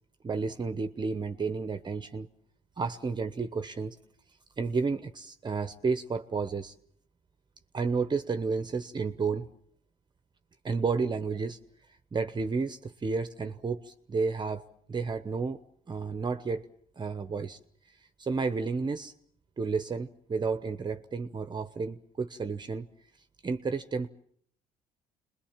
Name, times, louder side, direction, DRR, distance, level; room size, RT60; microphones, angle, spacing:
voice 1, 0.2-2.3 2.8-4.0 4.6-6.7 7.7-9.5 10.6-11.6 12.1-14.6 14.9-15.6 15.9-16.7 17.0-17.6 18.2-19.1 19.6-22.9 23.4-24.1, right 4 dB, 25° right, 10 dB, 1.0 m, -31 dB
27.5 x 21.5 x 7.4 m, 0.65 s
cardioid pair, 110°, 17 cm